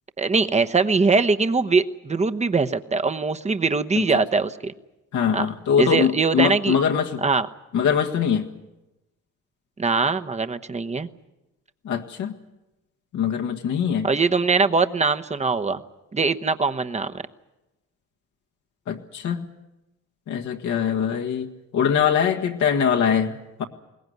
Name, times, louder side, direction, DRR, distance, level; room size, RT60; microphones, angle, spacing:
voice 1, 0.2-4.7 5.3-5.5 5.8-6.8 7.2-7.5 9.8-11.1 14.0-15.8 16.1-17.2, right 4 dB, 20° right, 9 dB, 1.0 m, -22 dB
voice 2, 5.1-7.2 7.7-8.5 11.8-12.4 13.1-14.1 18.9-19.5 20.3-23.6, left 7 dB, 75° left, 3 dB, 1.7 m, -23 dB
22.0 x 18.5 x 9.4 m, 0.99 s
cardioid pair, 90°, 30 cm